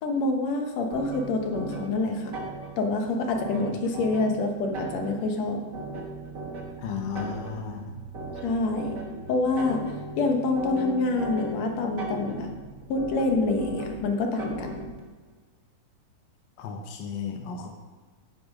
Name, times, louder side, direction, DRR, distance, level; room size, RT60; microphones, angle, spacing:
voice 1, 0.0-2.4 2.8-5.7 8.4-9.0 9.3-9.8 10.2-12.5 12.9-14.9, left 3 dB, 65° left, 3 dB, 2.2 m, -26 dB
sound 1, 0.9-15.0, right 2 dB, 55° right, 0.9 m, -38 dB
voice 2, 6.8-8.0 16.6-17.7, left 6 dB, 85° left, 4 dB, 1.0 m, -34 dB
10.0 x 6.9 x 5.2 m, 1.4 s
omnidirectional pair, 3.6 m